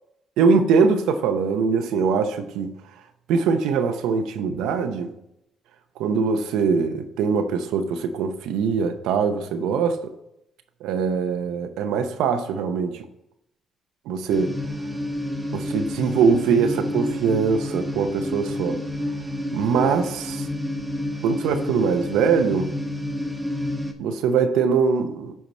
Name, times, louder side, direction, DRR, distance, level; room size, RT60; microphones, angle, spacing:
voice 1, 0.4-2.7 3.3-5.1 6.0-10.0 10.8-13.0 14.1-14.5 15.5-18.8 19.5-20.5 21.2-22.7 24.0-25.3, right 5 dB, 85° right, 0.8 m, -22 dB
sound 1, 14.3-23.9, left 1 dB, 15° right, 1.4 m, -29 dB
12.0 x 4.6 x 4.2 m
supercardioid pair, 70°, 0 cm